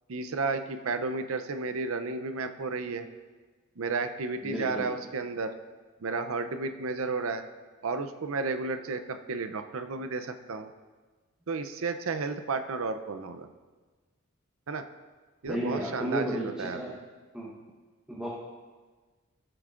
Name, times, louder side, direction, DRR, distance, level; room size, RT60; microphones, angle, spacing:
voice 1, 0.1-3.1 3.8-5.5 6.0-7.4 7.8-10.7 11.5-13.5 14.7-14.8 15.4-17.0, right 4 dB, 70° right, 8 dB, 0.6 m, -32 dB
voice 2, 4.4-4.9 15.5-17.0 17.3-17.5 18.1-18.3, right 1 dB, 5° right, -6 dB, 1.0 m, -33 dB
14.5 x 7.8 x 2.5 m, 1.4 s
head